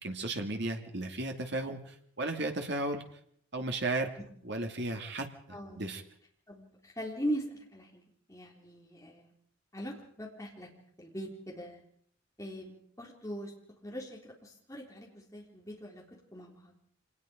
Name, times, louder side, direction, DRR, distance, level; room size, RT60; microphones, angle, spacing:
voice 1, 0.0-3.0 3.5-4.1 4.4-6.0, right 2 dB, 55° right, 4 dB, 2.6 m, -35 dB
voice 2, 5.5-6.0 6.5-8.0 8.3-9.2 9.7-10.7 11.0-11.8 12.4-13.5 13.8-16.0 16.3-16.7, equal, 15° left, -2 dB, 4.0 m, -40 dB
26.0 x 19.5 x 5.3 m, 0.65 s
head